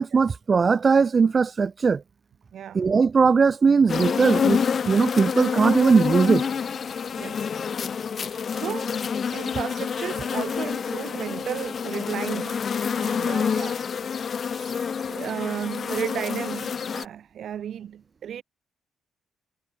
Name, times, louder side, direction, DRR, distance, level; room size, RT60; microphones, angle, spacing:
voice 1, 0.0-2.0 2.7-6.5, right 5 dB, 35° right, 0.4 m, -20 dB
voice 2, 2.5-2.9 7.2-7.5 8.2-9.0 9.3-13.8 14.5-18.4, right 9 dB, 65° right, 1.3 m, -34 dB
sound 1, 3.9-17.0, left 6 dB, 45° left, 1.0 m, -27 dB
cardioid pair, 90°, 0 cm